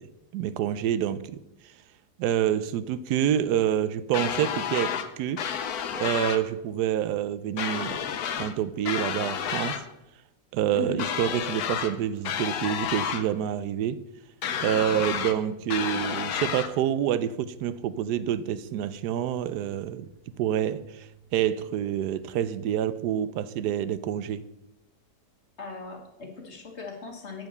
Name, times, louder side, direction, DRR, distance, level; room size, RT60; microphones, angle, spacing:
voice 1, 0.0-1.4 2.2-5.5 5.9-9.8 10.5-14.0 14.6-20.1 20.4-24.4, right 10 dB, 85° right, 1.1 m, -27 dB
sound 1, 4.1-5.1 5.4-6.4 7.6-8.5 8.8-9.8 11.0-11.9 12.2-13.2 14.4-15.4 15.7-16.7, left 8 dB, 70° left, 1.2 m, -30 dB
voice 2, 10.7-11.1 25.6-27.5, left 4 dB, 45° left, 1.7 m, -37 dB
sound 2, 15.6-24.0, right 5 dB, 35° right, 3.7 m, -53 dB
7.7 x 7.2 x 6.5 m
omnidirectional pair, 1.7 m